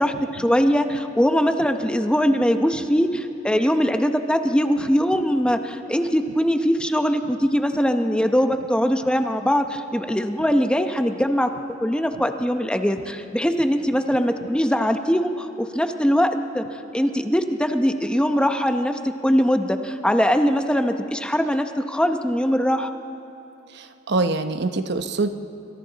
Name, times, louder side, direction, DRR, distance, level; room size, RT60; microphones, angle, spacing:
voice 1, 0.0-11.5 11.8-16.6 16.9-22.9, equal, 5° left, 6 dB, 0.8 m, -21 dB
voice 2, 23.7-25.3, right 3 dB, 60° right, 8 dB, 0.9 m, -24 dB
27.0 x 25.5 x 4.0 m, 2.8 s
head